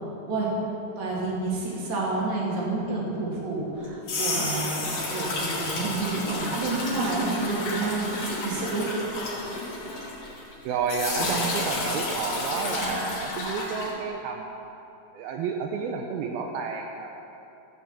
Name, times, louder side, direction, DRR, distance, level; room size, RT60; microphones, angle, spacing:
voice 1, 1.0-8.9, right 3 dB, 55° right, -4 dB, 3.2 m, -29 dB
sound 1, 3.8-10.5 10.9-13.9, left 2 dB, 50° left, 2.9 m, -31 dB
voice 2, 10.6-14.5 15.1-17.1, right 5 dB, 85° right, 2 dB, 2.5 m, -30 dB
14.5 x 6.1 x 6.9 m, 3.0 s
omnidirectional pair, 4.5 m